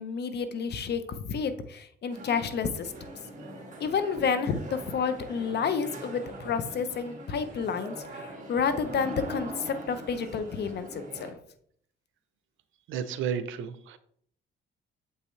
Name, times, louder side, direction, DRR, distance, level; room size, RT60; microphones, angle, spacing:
voice 1, 0.0-2.9 3.8-11.3, left 6 dB, 55° left, 11 dB, 0.8 m, -30 dB
sound 1, 2.1-11.3, right 1 dB, 40° right, 2.2 m, -42 dB
voice 2, 12.9-14.0, right 7 dB, 85° right, 12 dB, 0.6 m, -32 dB
7.3 x 5.5 x 3.2 m, 0.64 s
cardioid pair, 90°, 20 cm